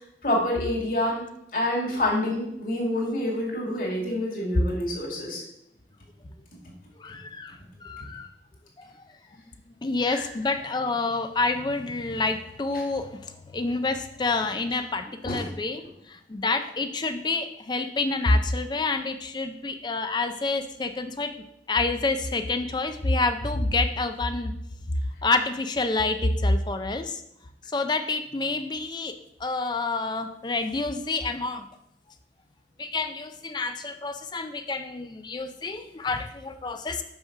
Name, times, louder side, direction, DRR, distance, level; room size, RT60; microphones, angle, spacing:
voice 1, 0.2-1.2 1.5-5.4 10.1-10.5 12.7-12.8 15.2-15.5, left 1 dB, 50° left, -3 dB, 2.2 m, -27 dB
voice 2, 7.0-8.3 8.8-8.9 9.8-15.8 16.1-21.3 21.7-24.5 25.2-27.2 27.7-29.1 29.4-31.7 32.8-37.0, left 3 dB, 25° left, 8 dB, 0.4 m, -28 dB
5.9 x 5.5 x 5.7 m, 0.79 s
head